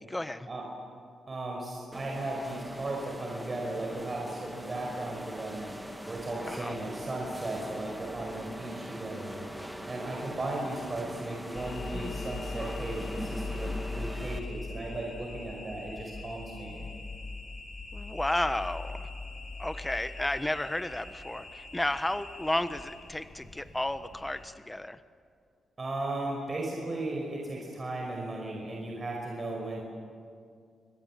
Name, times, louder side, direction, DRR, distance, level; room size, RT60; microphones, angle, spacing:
voice 1, 0.0-0.5 6.4-6.7 17.9-19.1 19.6-25.0, left 1 dB, 10° left, 11 dB, 1.2 m, -32 dB
voice 2, 1.3-9.5 9.8-16.9 25.8-29.8, right 2 dB, 35° right, -1 dB, 5.4 m, -36 dB
sound 1, 1.9-14.4, equal, 5° right, 2.1 m, -41 dB
sound 2, 11.5-24.4, left 3 dB, 50° left, 5.2 m, -41 dB
29.0 x 21.0 x 7.5 m, 2.3 s
cardioid pair, 80°, 0 cm